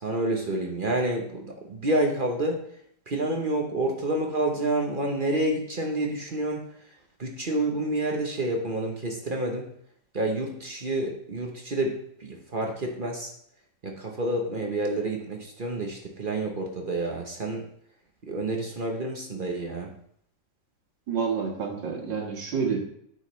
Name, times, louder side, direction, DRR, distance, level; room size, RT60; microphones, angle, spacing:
voice 1, 0.0-2.6 3.1-6.6 7.2-9.7 10.1-13.3 13.8-17.6 18.3-19.9, right 1 dB, 40° right, 1 dB, 0.9 m, -28 dB
voice 2, 21.1-22.8, right 6 dB, 90° right, 0 dB, 2.3 m, -28 dB
9.1 x 6.4 x 3.2 m, 0.68 s
omnidirectional pair, 1.9 m